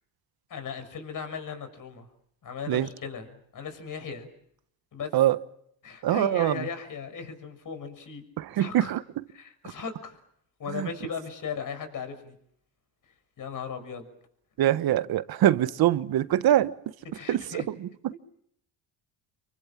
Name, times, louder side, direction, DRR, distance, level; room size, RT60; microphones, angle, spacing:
voice 1, 0.5-2.1 2.4-4.3 4.9-5.1 5.8-8.2 8.6-8.9 9.3-10.2 10.6-12.4 13.4-14.1 17.1-17.6 18.1-18.2, left 6 dB, 45° left, 6.4 m, -37 dB
voice 2, 6.0-6.7 8.4-9.2 10.7-10.9 14.6-16.7 17.3-18.1, right 12 dB, 55° right, 1.4 m, -24 dB
27.5 x 24.0 x 7.5 m
supercardioid pair, 95°, 44 cm